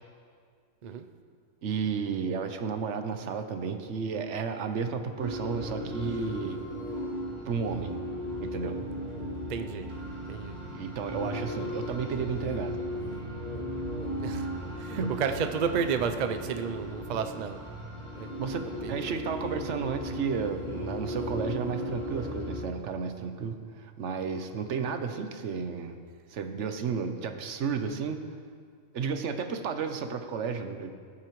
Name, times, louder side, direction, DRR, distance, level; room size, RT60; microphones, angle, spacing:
voice 1, 1.6-6.6 7.5-7.9 8.4-8.8 10.7-12.8 15.0-15.3 17.0-17.2 18.4-26.0 26.3-28.2 28.9-30.9, right 6 dB, 60° right, 7 dB, 1.0 m, -32 dB
sound 1, 5.2-22.6, equal, 30° right, 2.8 m, -36 dB
voice 2, 9.5-9.9 10.3-10.6 14.2-14.5 14.8-17.6 18.2-18.3 18.8-18.9, right 6 dB, 80° right, 8 dB, 0.4 m, -31 dB
18.0 x 8.6 x 3.1 m, 2.1 s
omnidirectional pair, 1.5 m